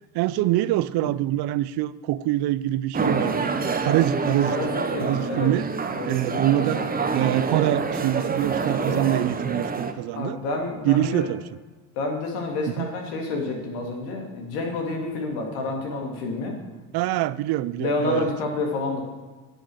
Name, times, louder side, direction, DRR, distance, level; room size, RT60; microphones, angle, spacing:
voice 1, 0.1-3.5 3.8-4.6 5.0-5.7 6.0-6.8 7.1-10.4 10.9-11.4 12.8-12.9 16.9-18.3, right 14 dB, 60° right, 18 dB, 0.5 m, -24 dB
sound 1, 2.9-9.9, right 4 dB, 20° right, 0.9 m, -27 dB
voice 2, 4.5-5.5 5.9-7.0 7.3-7.4 8.9-9.1 10.2-11.3 11.9-16.6 17.8-19.0, left 3 dB, 85° left, 1 dB, 2.2 m, -29 dB
9.6 x 6.4 x 6.3 m, 1.3 s
supercardioid pair, 85°, 45 cm